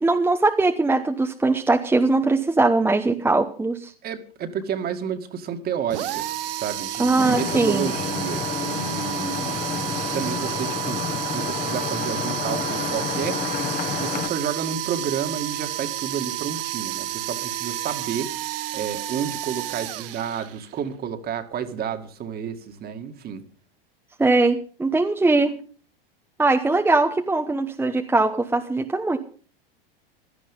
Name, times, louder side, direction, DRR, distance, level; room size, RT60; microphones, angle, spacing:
voice 1, 0.0-3.9 7.0-8.0 24.2-25.6 26.4-29.2, right 3 dB, 5° right, 4 dB, 1.0 m, -21 dB
voice 2, 4.0-6.3 6.5-13.4 13.9-18.3 18.7-23.4, right 8 dB, 30° right, 8 dB, 2.1 m, -30 dB
sound 1, 5.9-20.8, right 13 dB, 70° right, 1.1 m, -31 dB
Vehicle horn car horn honking / Traffic noise roadway noise, 7.2-14.3, left 7 dB, 25° left, 1.6 m, -30 dB
16.5 x 12.0 x 5.4 m, 0.41 s
hypercardioid pair, 115°, 30 cm